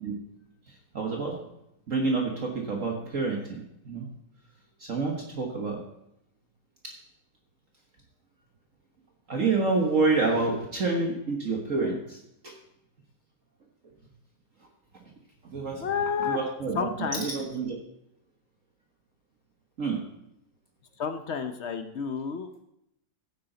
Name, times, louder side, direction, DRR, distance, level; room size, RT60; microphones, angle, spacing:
voice 1, 0.9-1.4 1.9-4.1 4.8-5.8 6.8-6.9 9.3-12.5 15.4-15.9 16.2-17.8 19.8-20.0, right 3 dB, 50° right, 0 dB, 1.5 m, -28 dB
voice 2, 15.8-16.4 16.7-17.3 21.0-22.5, left 6 dB, 60° left, 8 dB, 0.7 m, -30 dB
15.0 x 8.4 x 3.9 m, 0.80 s
omnidirectional pair, 1.9 m